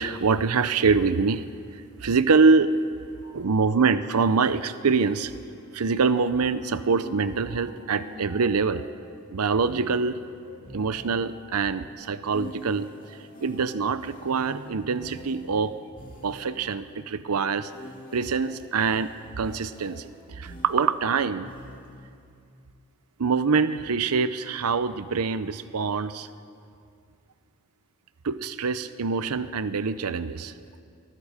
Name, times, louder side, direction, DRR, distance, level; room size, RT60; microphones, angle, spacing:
voice 1, 0.0-1.5 1.7-2.8 3.3-5.3 5.7-8.8 9.3-10.2 10.7-15.8 16.2-17.7 18.1-21.5 23.2-26.3 28.2-30.5, right 4 dB, 85° right, 13 dB, 0.6 m, -25 dB
sound 1, 3.1-11.9, left 3 dB, 80° left, 3.1 m, -52 dB
sound 2, 6.9-8.7 9.6-11.5 12.3-16.8 17.7-22.2, equal, 35° left, 2.4 m, -46 dB
26.0 x 20.5 x 5.0 m, 2.4 s
head